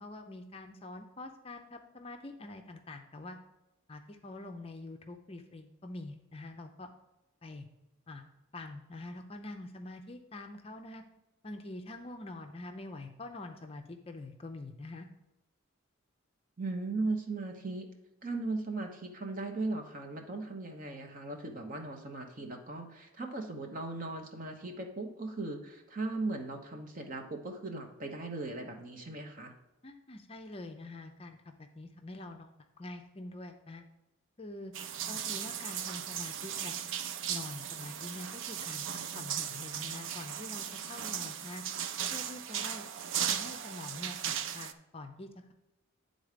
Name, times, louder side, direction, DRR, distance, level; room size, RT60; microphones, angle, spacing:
voice 1, 0.0-3.4 3.9-6.9 7.4-7.7 8.1-8.3 8.5-11.0 11.4-15.1 29.8-32.5 32.8-33.8 34.4-34.7 35.1-36.8 37.3-38.9 39.1-41.6 42.1-42.8 43.2-45.5, left 2 dB, 25° left, 5 dB, 0.5 m, -45 dB
voice 2, 16.6-17.9 18.2-29.5, right 2 dB, 40° right, 3 dB, 1.0 m, -38 dB
sound 1, 34.7-44.7, right 9 dB, 65° right, 0.4 m, -37 dB
9.5 x 3.9 x 5.0 m, 0.99 s
head